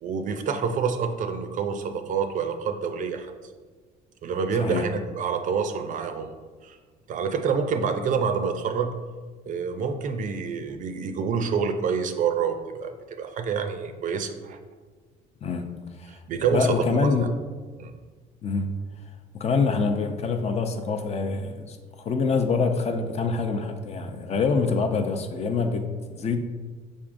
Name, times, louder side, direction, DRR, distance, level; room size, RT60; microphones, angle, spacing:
voice 1, 0.0-3.3 4.2-6.3 6.6-6.8 7.1-8.9 9.5-14.6 16.1-17.1 17.8-17.9, right 6 dB, 50° right, 8 dB, 0.4 m, -27 dB
voice 2, 16.5-17.3 18.4-18.7 19.3-26.4, left 4 dB, 40° left, 6 dB, 0.4 m, -25 dB
5.2 x 3.5 x 2.5 m, 1.4 s
cardioid pair, 110°, 17 cm